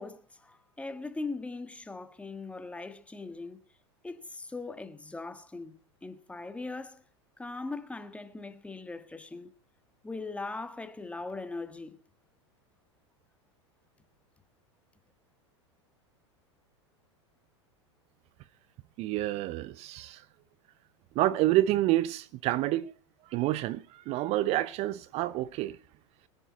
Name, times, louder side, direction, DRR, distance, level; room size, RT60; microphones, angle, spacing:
voice 1, 0.0-3.6 4.0-5.7 6.0-7.0 7.4-9.5 10.0-12.0, left 3 dB, 10° left, 1.6 m, -40 dB
voice 2, 19.0-20.2 21.2-22.9 23.3-25.8, right 15 dB, 45° right, 0.6 m, -28 dB
22.0 x 10.0 x 4.2 m
hypercardioid pair, 95°, 15 cm